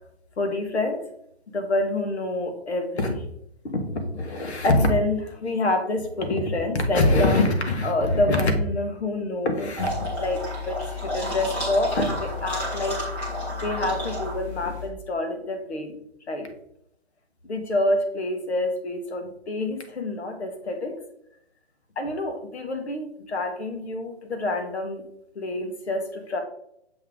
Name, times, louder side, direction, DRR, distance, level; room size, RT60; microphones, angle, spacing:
voice 1, 0.4-1.0 1.5-3.2 3.6-13.0 13.6-16.0 16.3-16.5 17.4-21.0 21.9-25.0 25.3-26.4, left 2 dB, 80° left, 5 dB, 1.6 m, -26 dB
sound 1, 9.8-14.9, left 1 dB, 5° left, 0.6 m, -31 dB
6.9 x 3.7 x 3.8 m, 0.75 s
hypercardioid pair, 165°, 32 cm